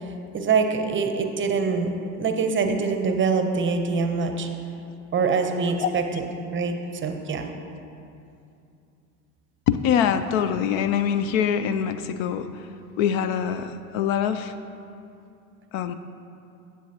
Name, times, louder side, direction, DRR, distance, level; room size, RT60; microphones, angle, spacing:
voice 1, 0.3-1.9 2.2-4.5 5.1-6.2 6.5-6.8 7.0-7.5, right 5 dB, 25° right, 5 dB, 0.7 m, -24 dB
voice 2, 9.7-12.7 13.0-14.5 15.7-15.9, left 8 dB, 60° left, 11 dB, 0.5 m, -24 dB
11.0 x 7.4 x 2.8 m, 2.5 s
hypercardioid pair, 75°, 47 cm